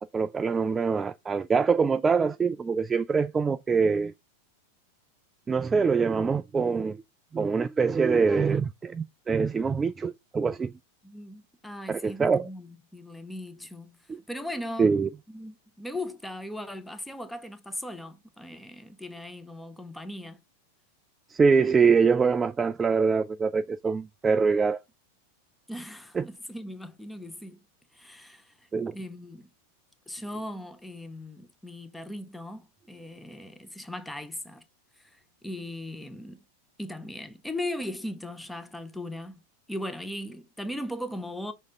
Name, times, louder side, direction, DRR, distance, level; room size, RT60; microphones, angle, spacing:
voice 1, 0.1-4.1 5.5-7.0 7.3-10.7 11.9-12.5 14.8-15.1 21.3-24.8 26.2-26.3 28.7-29.0, right 5 dB, 15° right, 0.3 m, -24 dB
voice 2, 8.0-8.6 11.0-14.0 14.3-15.0 15.3-20.4 25.7-27.6 27.9-28.7 28.9-29.5 30.1-34.6 35.0-36.4 36.8-39.4 39.7-41.5, left 1 dB, 5° left, 0.9 m, -38 dB
6.3 x 3.5 x 5.5 m
figure-of-eight pair, 90°, 0 cm